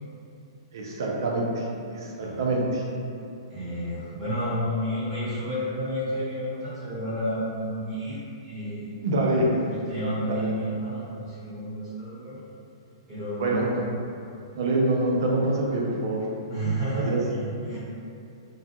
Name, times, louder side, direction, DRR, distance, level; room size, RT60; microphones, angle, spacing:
voice 1, 0.7-2.9 9.0-9.5 10.3-10.5 13.4-13.7 14.5-16.3 16.9-17.2, right 2 dB, 55° right, -2 dB, 0.4 m, -25 dB
voice 2, 3.5-8.9 9.7-12.4 13.1-13.7 16.5-17.8, equal, 10° right, -16 dB, 1.1 m, -31 dB
2.3 x 2.2 x 2.7 m, 2.6 s
hypercardioid pair, 170°, 3 cm